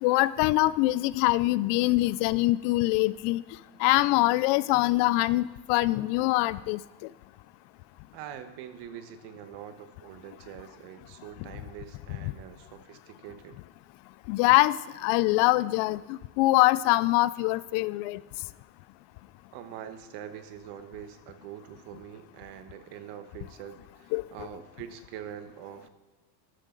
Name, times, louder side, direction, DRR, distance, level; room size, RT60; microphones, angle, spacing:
voice 1, 0.0-3.4 3.8-6.8 14.3-18.2 24.1-24.2, left 19 dB, 65° left, 18 dB, 0.5 m, -24 dB
voice 2, 8.1-13.6 19.5-25.9, right 10 dB, 60° right, 10 dB, 1.3 m, -44 dB
13.0 x 13.0 x 3.9 m, 1.2 s
cardioid pair, 145°, 47 cm